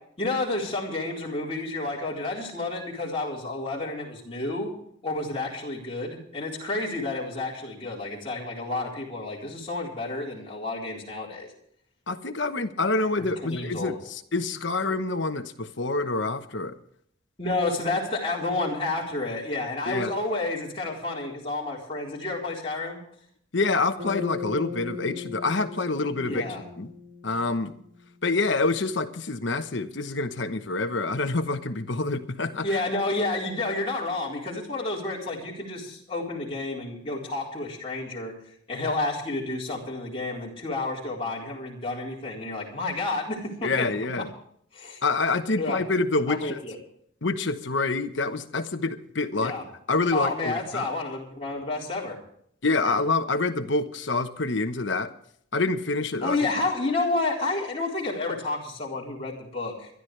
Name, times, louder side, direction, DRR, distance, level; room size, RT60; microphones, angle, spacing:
voice 1, 0.2-4.7 5.0-11.5 13.2-14.0 17.4-23.0 26.2-26.6 32.6-38.4 38.7-43.9 44.7-45.0 45.6-45.8 46.3-46.8 49.4-49.6 50.1-52.2 52.8-53.0 56.2-59.9, left 2 dB, 30° left, -4 dB, 4.2 m, -30 dB
voice 2, 12.1-16.8 19.9-20.1 23.5-26.5 26.8-26.9 27.2-27.7 28.2-32.8 43.6-44.3 45.0-46.6 47.2-49.5 49.9-50.9 52.6-55.1 55.5-56.4, left 3 dB, 65° left, 8 dB, 1.1 m, -27 dB
Bass guitar, 24.0-28.4, left 6 dB, 45° right, 4.2 m, -38 dB
23.5 x 12.5 x 3.3 m, 0.65 s
head